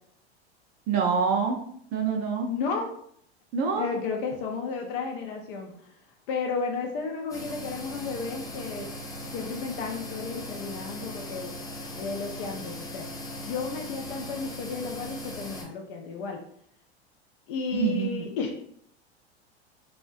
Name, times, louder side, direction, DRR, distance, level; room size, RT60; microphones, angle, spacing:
voice 1, 0.9-1.6 1.9-2.5 3.5-3.9 17.7-18.3, right 6 dB, 40° right, 1 dB, 0.5 m, -26 dB
voice 2, 2.4-2.9 3.8-5.8 6.3-8.9 9.3-11.5 11.9-13.1 13.4-16.4 17.5-18.5, left 5 dB, 55° left, 2 dB, 0.5 m, -33 dB
sound 1, 7.3-15.6, left 1 dB, 10° left, 0.6 m, -39 dB
2.5 x 2.1 x 2.3 m, 0.65 s
hypercardioid pair, 90°, 32 cm